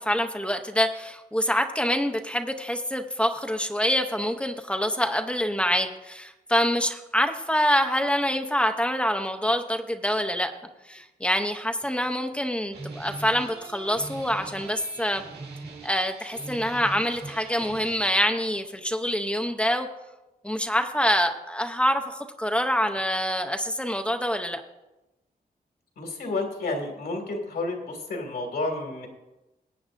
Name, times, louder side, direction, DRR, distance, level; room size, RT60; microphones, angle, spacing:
voice 1, 0.0-10.5 10.9-15.2 15.8-19.9 20.4-24.6, equal, 5° left, 5 dB, 0.6 m, -26 dB
sound 1, 11.0-11.1 11.6-12.4 12.6-18.0, right 3 dB, 80° right, 2.2 m, -41 dB
voice 2, 26.0-29.1, left 2 dB, 85° left, 2 dB, 2.2 m, -31 dB
21.0 x 8.5 x 2.6 m, 1.0 s
wide cardioid pair, 175°, 16 cm